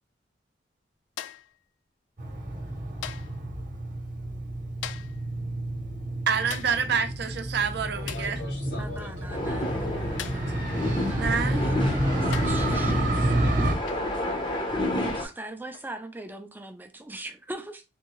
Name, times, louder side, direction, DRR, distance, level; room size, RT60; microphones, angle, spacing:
sound 1, 1.2-1.6 3.0-3.4 4.8-5.2 6.5-6.8 8.1-8.4 10.2-10.5 11.6-11.7 12.3-12.7 13.9-14.1 15.7-15.9, left 10 dB, 90° left, 0.3 m, -39 dB
Motorcycle, 2.2-13.7, right 1 dB, 45° right, 0.9 m, -29 dB
voice 1, 6.3-8.4 11.2-11.6, right 6 dB, 60° right, 0.5 m, -27 dB
voice 2, 7.9-9.6 11.9-13.7, left 3 dB, 70° left, 1.5 m, -43 dB
voice 3, 8.8-10.6 11.0-12.9 15.0-17.8, right 2 dB, 10° right, 0.5 m, -41 dB
sound 2, 9.3-15.3, left 1 dB, 25° left, 0.7 m, -30 dB
3.6 x 2.6 x 3.0 m
head